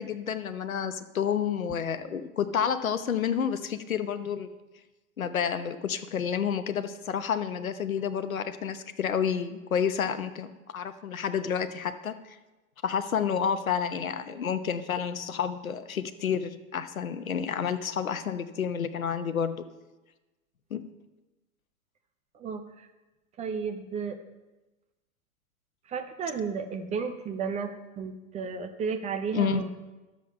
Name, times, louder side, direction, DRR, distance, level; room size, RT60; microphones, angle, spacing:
voice 1, 0.0-4.5 5.2-12.4 12.8-19.6 20.7-20.8 29.3-29.6, left 7 dB, 70° left, 10 dB, 1.0 m, -30 dB
voice 2, 22.3-22.9 23.4-24.2 25.9-29.7, right 6 dB, 15° right, 6 dB, 0.7 m, -33 dB
12.5 x 7.5 x 5.5 m, 1.1 s
figure-of-eight pair, 100°, 43 cm